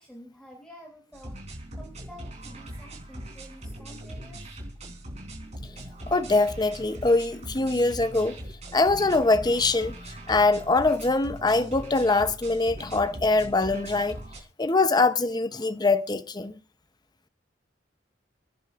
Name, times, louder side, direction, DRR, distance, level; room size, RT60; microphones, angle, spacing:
voice 1, 0.0-4.6, equal, 5° left, 3.0 m, -49 dB
sound 1, 1.1-14.4, right 1 dB, 40° right, 3.7 m, -41 dB
voice 2, 6.1-8.4 8.7-14.2 14.6-16.6, left 3 dB, 25° left, 0.8 m, -23 dB
28.0 x 10.0 x 2.5 m
head